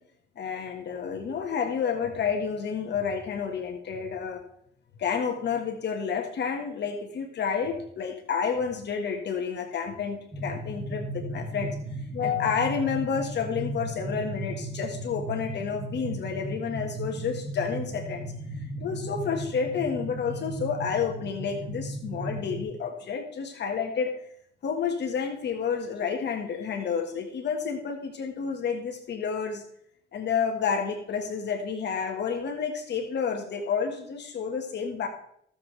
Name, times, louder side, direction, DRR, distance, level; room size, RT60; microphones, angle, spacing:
voice 1, 0.3-4.4 5.0-11.8 12.1-24.1 24.6-29.6 30.1-35.1, left 6 dB, 60° left, 4 dB, 1.6 m, -30 dB
sound 1, 10.3-22.6, right 1 dB, 15° right, 2.6 m, -36 dB
18.0 x 7.3 x 3.3 m, 0.69 s
cardioid pair, 90°, 20 cm